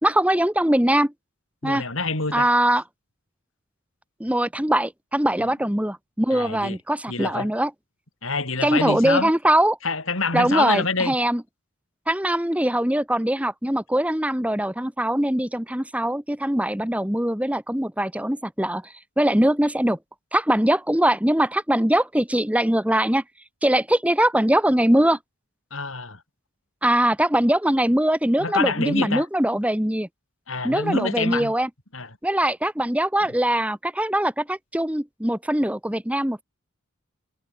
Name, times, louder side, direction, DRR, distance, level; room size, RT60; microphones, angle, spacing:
voice 1, 0.0-1.1 1.6-1.8 2.3-2.8 4.2-7.7 8.6-9.8 10.3-11.4 12.1-20.0 20.3-23.2 23.6-25.2 26.8-30.1 30.6-31.7 32.2-36.4, right 1 dB, 5° right, 1.8 m, -22 dB
voice 2, 1.6-2.5 5.4-5.5 6.3-6.8 7.1-7.5 8.2-9.3 9.8-11.2 25.7-26.2 28.4-29.3 30.5-31.5 31.9-32.1, left 3 dB, 70° left, 5.8 m, -26 dB
head